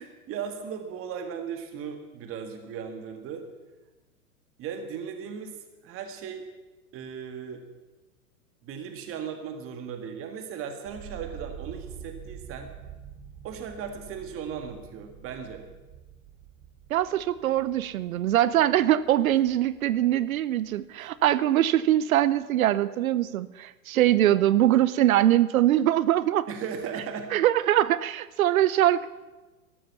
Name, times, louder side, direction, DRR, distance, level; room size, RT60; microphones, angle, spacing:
voice 1, 0.0-3.4 4.6-5.6 5.8-6.4 6.9-7.6 8.6-12.7 13.4-15.6 21.0-21.1 26.5-27.3, right 7 dB, 30° right, 6 dB, 1.8 m, -37 dB
sound 1, 10.9-20.8 21.1-21.9, right 8 dB, 45° right, 4.7 m, -46 dB
voice 2, 16.9-26.5 27.3-29.1, right 13 dB, 65° right, 17 dB, 0.8 m, -22 dB
14.0 x 11.5 x 7.0 m, 1.2 s
hypercardioid pair, 115°, 45 cm